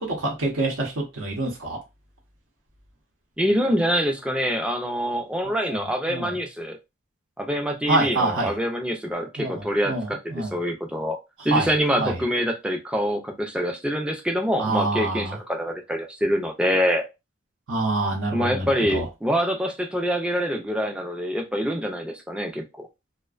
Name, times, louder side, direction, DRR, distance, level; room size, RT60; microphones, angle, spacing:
voice 1, 0.0-1.8 5.5-6.4 7.9-8.5 9.4-10.6 11.5-11.7 12.0-12.2 14.6-15.4 17.7-19.1, right 2 dB, 75° right, 0.8 m, -26 dB
voice 2, 3.4-6.8 7.4-11.2 11.4-17.0 18.3-22.9, equal, 5° right, 0.3 m, -25 dB
2.4 x 2.1 x 2.3 m
head